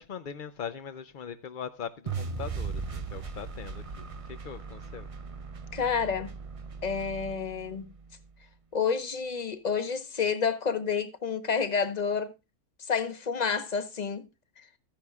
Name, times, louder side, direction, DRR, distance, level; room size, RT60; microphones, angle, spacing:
voice 1, 0.0-5.1, left 7 dB, 65° left, 0.5 m, -41 dB
sound 1, 2.1-8.2, right 5 dB, 60° right, 0.3 m, -38 dB
voice 2, 5.7-6.3 6.8-7.9 8.7-12.3 12.8-14.3 14.6-14.7, left 6 dB, 35° left, 0.9 m, -29 dB
14.5 x 10.5 x 2.3 m
omnidirectional pair, 1.6 m